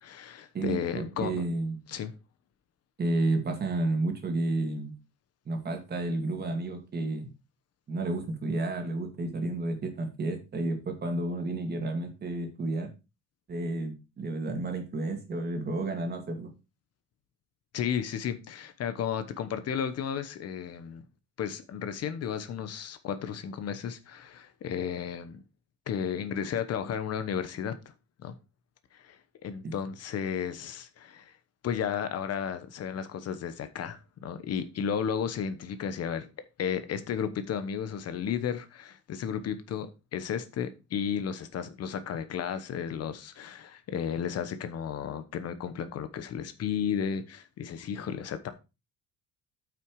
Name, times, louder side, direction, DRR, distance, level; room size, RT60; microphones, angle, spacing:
voice 1, 0.0-1.5 1.9-2.1 17.7-21.0 21.4-25.4 25.9-27.7 28.2-28.4 28.9-31.4 31.6-36.3 36.6-48.5, left 8 dB, 50° left, 1.1 m, -33 dB
voice 2, 0.5-1.8 3.0-5.0 5.5-7.3 7.9-12.9 13.5-16.5 29.6-29.7, right 2 dB, 30° right, 2.3 m, -31 dB
8.9 x 6.1 x 4.7 m
cardioid pair, 155°, 32 cm